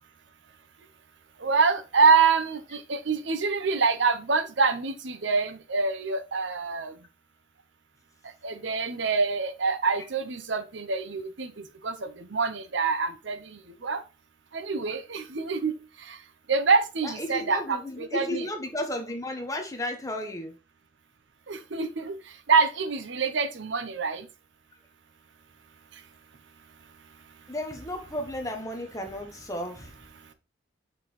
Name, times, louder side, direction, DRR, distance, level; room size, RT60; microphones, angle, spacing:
voice 1, 1.4-6.9 8.4-11.5 11.8-13.4 13.8-14.0 14.5-15.7 16.1-16.2 16.5-18.4 21.5-22.2 22.5-24.3, right 4 dB, 70° right, 0.8 m, -25 dB
voice 2, 17.0-20.6 27.5-29.9, left 1 dB, 15° left, 1.1 m, -34 dB
6.1 x 4.9 x 3.2 m
head